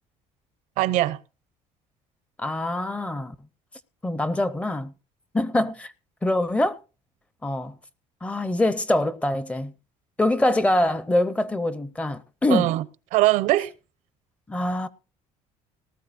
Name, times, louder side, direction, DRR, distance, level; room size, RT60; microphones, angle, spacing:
voice 1, 0.8-1.2 12.5-12.8 13.1-13.7, right 16 dB, 80° right, 0.7 m, -21 dB
voice 2, 2.4-3.4 4.0-4.9 5.3-5.9 6.2-6.8 7.4-7.7 8.2-9.7 10.2-12.7 14.5-14.9, left 1 dB, 10° left, 0.6 m, -24 dB
19.0 x 13.5 x 2.5 m
cardioid pair, 160°, 13 cm